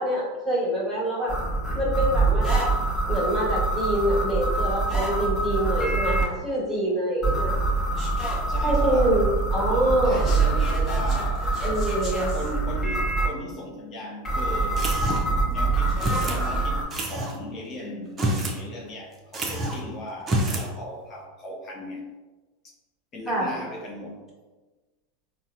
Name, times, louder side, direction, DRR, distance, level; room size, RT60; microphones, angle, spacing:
voice 1, 0.0-1.4 1.7-2.7 3.1-7.5 8.6-10.3 11.6-12.3 23.3-23.5, right 1 dB, 5° right, -7 dB, 1.4 m, -25 dB
sound 1, 1.3-6.2 7.2-13.3 14.2-16.8, right 3 dB, 20° left, 0.9 m, -25 dB
voice 2, 8.5-9.2 10.0-11.6 12.3-15.0 15.5-22.0 22.6-22.7 23.1-24.3, left 1 dB, 35° left, -1 dB, 0.6 m, -37 dB
sound 2, 14.8-15.4 16.0-16.4 16.9-17.4 18.1-18.6 18.9-19.0 19.3-19.8 20.2-20.7, right 1 dB, 25° right, 0.6 m, -27 dB
4.0 x 2.1 x 2.5 m, 1.2 s
hypercardioid pair, 105°, 0 cm